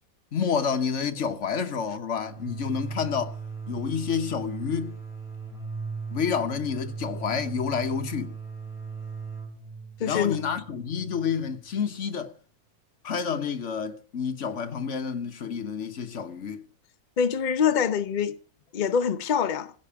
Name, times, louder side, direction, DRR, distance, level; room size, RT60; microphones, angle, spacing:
voice 1, 0.3-3.4 3.7-5.0 6.1-8.4 10.1-12.3 13.0-16.6, left 6 dB, 45° left, 1.2 m, -29 dB
sound 1, 2.2-11.7, right 5 dB, ahead, 3.7 m, -38 dB
voice 2, 10.0-10.4 17.2-18.4 18.7-19.7, left 7 dB, 90° left, 0.4 m, -24 dB
16.0 x 5.3 x 8.6 m
omnidirectional pair, 2.0 m